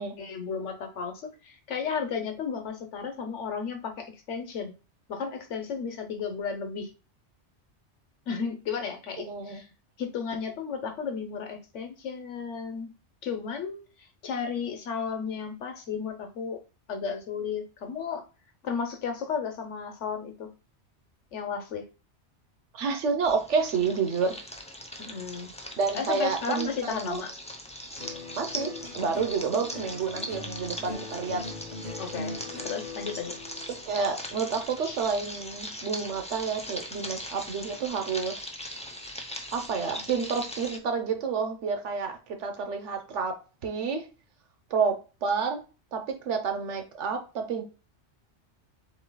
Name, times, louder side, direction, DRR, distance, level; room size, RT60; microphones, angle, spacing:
voice 1, 0.0-4.7 5.1-6.9 8.3-9.7 10.0-12.9 13.2-13.8 14.2-16.6 16.9-18.2 18.6-20.5 21.3-21.8 25.0-25.5 25.9-27.3 30.8-30.9 32.0-32.4 32.6-33.4 34.8-35.0 39.9-40.0, left 6 dB, 85° left, 5 dB, 1.2 m, -34 dB
voice 2, 9.3-9.6 22.7-24.3 25.8-27.2 28.4-31.4 33.7-38.4 39.5-43.4 43.6-44.1 44.7-45.0 45.2-45.6 45.9-47.6, right 5 dB, 85° right, 6 dB, 1.2 m, -29 dB
sound 1, 23.2-40.8, equal, 10° left, 0.5 m, -40 dB
sound 2, 28.0-36.4 36.7-37.4, left 3 dB, 40° left, 1.4 m, -42 dB
7.4 x 2.9 x 2.2 m, 0.32 s
omnidirectional pair, 1.2 m